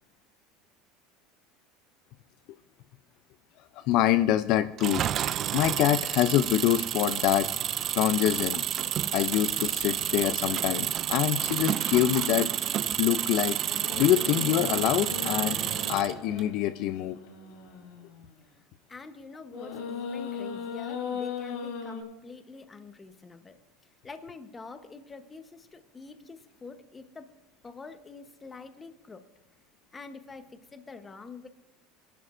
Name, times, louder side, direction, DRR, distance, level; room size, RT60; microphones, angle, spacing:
voice 1, 3.7-7.5 7.9-8.6 9.1-12.5 12.8-15.6 15.9-17.2, left 12 dB, 50° left, 11 dB, 0.4 m, -25 dB
Engine, 4.8-16.4, right 11 dB, 35° right, 0.3 m, -30 dB
sound 1, 13.4-18.3 19.5-22.0, left 6 dB, 75° left, 3.8 m, -38 dB
voice 2, 18.9-23.6 24.0-27.3 27.6-29.3 29.9-31.5, left 4 dB, 15° left, 8 dB, 1.0 m, -46 dB
22.5 x 11.5 x 2.6 m, 1.0 s
cardioid pair, 155°, 0 cm